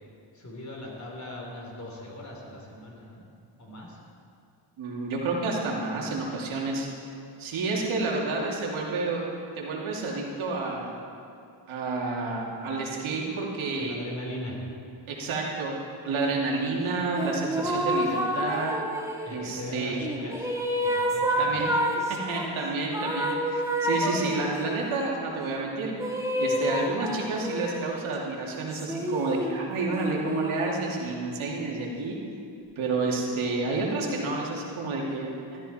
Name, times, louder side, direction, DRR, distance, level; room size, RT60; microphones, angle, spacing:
voice 1, 0.3-3.2 3.6-4.0 13.8-14.6 19.2-20.5 20.8-21.6, left 1 dB, 35° left, -1 dB, 3.7 m, -39 dB
voice 2, 4.8-6.9 7.4-9.2 9.5-10.9 11.7-14.0 15.1-15.7 16.0-18.7 19.3-20.0 21.4-21.7 22.1-25.9 26.4-32.1 32.8-35.6, right 3 dB, 80° right, -2 dB, 2.8 m, -30 dB
sound 1, 17.2-19.4 20.0-22.5 22.9-24.8 26.0-27.9 28.7-31.0, equal, 5° right, 1.8 m, -29 dB
14.0 x 14.0 x 4.4 m, 2.5 s
cardioid pair, 100°, 48 cm